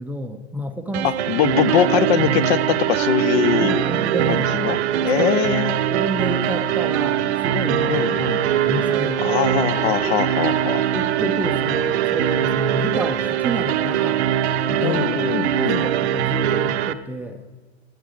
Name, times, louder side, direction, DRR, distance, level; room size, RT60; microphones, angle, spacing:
voice 1, 0.0-1.1 3.6-5.4 5.9-8.0 8.6-9.2 9.9-10.2 10.9-14.2 14.7-15.0 15.7-17.4, right 1 dB, 5° right, 8 dB, 0.4 m, -29 dB
sound 1, 0.9-16.9, right 11 dB, 65° right, 0.6 m, -22 dB
voice 2, 1.0-3.8 4.3-4.8 5.0-5.9 7.9-8.5 9.2-10.8 14.8-15.9, left 10 dB, 60° left, 16 dB, 0.7 m, -22 dB
sound 2, 5.7-16.2, left 4 dB, 20° left, 0.9 m, -40 dB
9.2 x 7.3 x 8.4 m, 1.3 s
hypercardioid pair, 105°, 36 cm